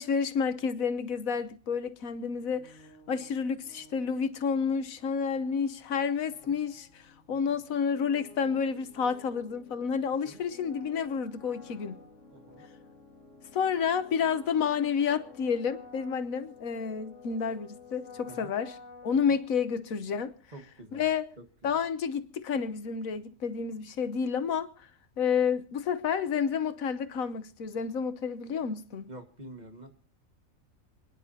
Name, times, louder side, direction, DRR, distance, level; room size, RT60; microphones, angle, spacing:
voice 1, 0.0-2.8 3.1-7.0 7.3-12.0 13.5-18.7 19.0-20.3 20.9-21.2 21.6-24.9 25.2-29.1, left 6 dB, 85° left, 1.4 m, -30 dB
sound 1, 2.4-20.0, left 3 dB, 65° left, 2.8 m, -53 dB
voice 2, 12.3-12.7 18.3-18.5 19.3-19.4 20.5-21.1 21.4-21.8 29.1-29.9, right 1 dB, 35° right, 1.7 m, -48 dB
29.5 x 10.5 x 2.7 m
omnidirectional pair, 1.4 m